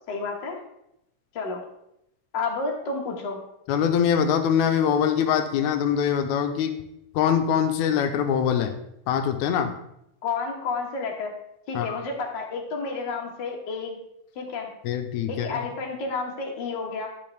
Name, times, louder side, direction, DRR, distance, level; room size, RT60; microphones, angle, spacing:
voice 1, 0.1-0.6 1.3-1.6 2.3-3.4 10.2-11.3 11.7-14.0 14.3-14.7 15.3-17.1, left 4 dB, 50° left, 0 dB, 1.6 m, -30 dB
voice 2, 3.7-6.7 7.1-8.7 9.1-9.7 11.7-12.0 14.8-15.6, left 8 dB, 85° left, 7 dB, 2.1 m, -23 dB
11.0 x 6.2 x 3.4 m, 0.80 s
omnidirectional pair, 3.4 m